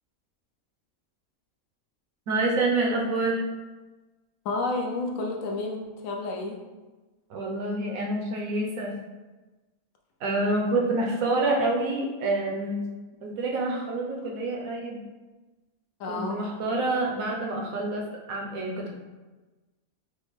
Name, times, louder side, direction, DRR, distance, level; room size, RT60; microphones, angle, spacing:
voice 1, 2.3-3.4 7.3-8.9 10.2-12.9 13.2-15.0 16.1-19.0, right 2 dB, 75° right, -1 dB, 1.1 m, -27 dB
voice 2, 4.4-6.6 16.0-16.4, left 2 dB, 70° left, 0 dB, 1.0 m, -30 dB
5.0 x 2.1 x 3.1 m, 1.2 s
omnidirectional pair, 1.5 m